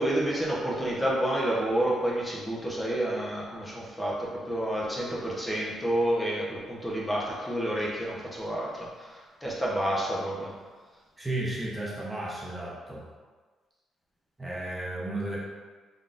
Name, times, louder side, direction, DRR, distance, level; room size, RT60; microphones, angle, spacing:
voice 1, 0.0-10.5, right 1 dB, 15° left, -5 dB, 0.9 m, -29 dB
voice 2, 11.2-13.0 14.4-15.4, right 1 dB, 15° right, -6 dB, 0.8 m, -33 dB
3.7 x 3.7 x 2.5 m, 1.4 s
cardioid pair, 90°, 0 cm